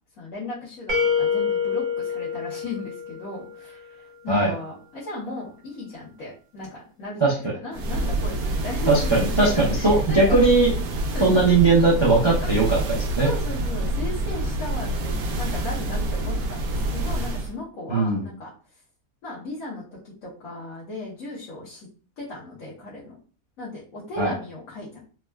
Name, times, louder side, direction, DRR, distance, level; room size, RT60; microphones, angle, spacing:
voice 1, 0.2-10.4 11.1-11.4 12.4-12.5 13.2-18.5 19.2-21.9 22.2-23.2 23.6-25.1, left 2 dB, 70° left, -7 dB, 1.2 m, -36 dB
sound 1, 0.9-3.8, left 6 dB, 70° right, 1.2 m, -26 dB
sound 2, 7.7-17.5, right 1 dB, 85° right, 1.1 m, -27 dB
voice 2, 8.9-10.7 11.2-13.3 17.9-18.3 24.2-24.3, right 3 dB, 45° right, -5 dB, 0.3 m, -19 dB
3.4 x 2.2 x 2.2 m, 0.40 s
omnidirectional pair, 1.5 m